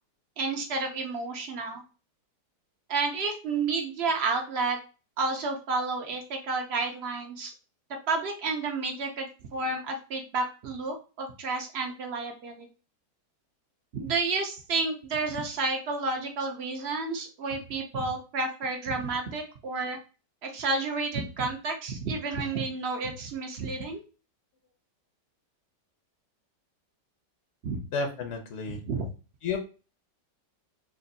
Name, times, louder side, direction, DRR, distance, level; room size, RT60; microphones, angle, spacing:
voice 1, 0.4-1.8 2.9-4.8 5.2-7.5 8.1-9.3 9.5-12.7 13.9-20.0 20.4-24.0 27.6-27.8 28.7-29.1, right 3 dB, 75° right, 3 dB, 0.5 m, -31 dB
voice 2, 27.9-28.8 29.4-29.6, left 4 dB, 65° left, 3 dB, 0.7 m, -31 dB
3.3 x 2.6 x 3.9 m, 0.33 s
omnidirectional pair, 1.9 m